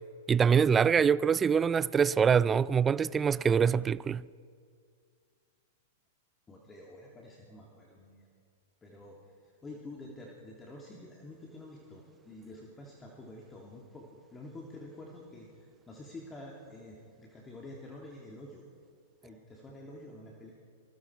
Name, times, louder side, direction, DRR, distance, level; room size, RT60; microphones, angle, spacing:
voice 1, 0.3-4.2, right 7 dB, 20° right, 0.4 m, -24 dB
voice 2, 6.5-8.3 8.8-18.6 19.2-20.5, left 1 dB, 15° left, 2.8 m, -48 dB
28.0 x 20.5 x 4.6 m
figure-of-eight pair, 105°, 0 cm